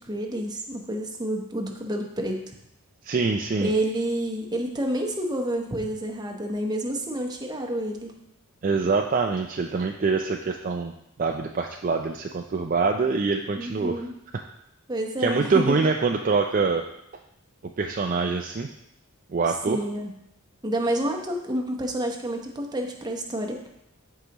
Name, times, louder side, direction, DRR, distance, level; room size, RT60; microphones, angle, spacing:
voice 1, 0.0-2.4 3.6-8.2 13.6-14.1 14.9-15.7 19.7-20.1 20.6-23.6, right 1 dB, 20° right, 2 dB, 0.9 m, -29 dB
voice 2, 3.0-3.7 8.6-10.9 11.2-14.0 14.3-14.4 15.2-16.8 17.8-18.7 19.3-19.8, right 4 dB, 40° right, 3 dB, 0.4 m, -24 dB
13.5 x 4.8 x 3.0 m, 0.81 s
head